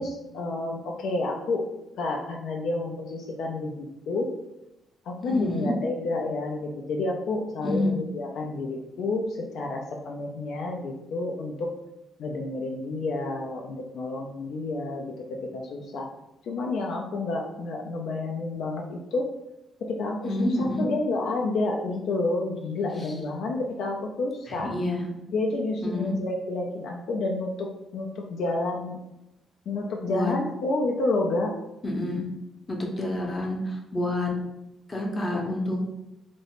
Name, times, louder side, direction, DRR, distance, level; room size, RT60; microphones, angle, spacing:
voice 1, 0.0-1.6 2.0-4.3 5.0-11.7 12.2-16.1 16.4-19.3 19.8-24.7 25.3-29.0 29.7-31.5, left 2 dB, 75° left, 0 dB, 0.3 m, -29 dB
voice 2, 5.2-5.7 7.6-7.9 20.2-20.8 24.5-25.0 25.8-26.1 30.1-30.3 31.8-32.2 32.7-34.3 34.9-35.8, left 1 dB, 25° left, 0 dB, 0.6 m, -28 dB
2.5 x 2.0 x 2.9 m, 0.90 s
cardioid pair, 90°, 0 cm